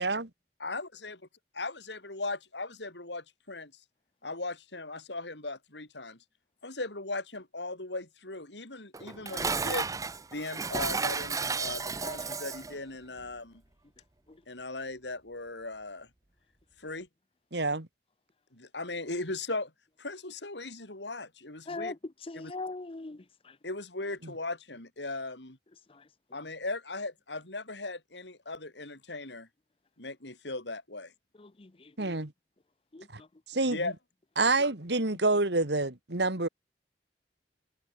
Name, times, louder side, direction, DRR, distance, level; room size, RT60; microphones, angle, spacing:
voice 1, 0.6-1.2 1.5-3.7 4.2-6.2 6.6-9.9 10.3-13.6 14.5-16.1 16.8-17.1 18.5-19.7 20.0-21.9 22.3-22.5 23.6-25.6 26.3-29.5 30.0-31.1 33.7-33.9, left 2 dB, 80° left, 5.4 m, -38 dB
Dishes pots and pans, 8.9-12.8, right 4 dB, 20° right, 0.6 m, -33 dB
voice 2, 17.5-17.9 32.0-32.3 33.1-33.2 33.5-33.9 34.4-36.5, right 3 dB, 75° right, 2.5 m, -27 dB
voice 3, 21.7-22.0 22.3-23.6 25.9-26.0 31.4-32.1 32.9-33.3, left 3 dB, 30° left, 0.7 m, -41 dB
head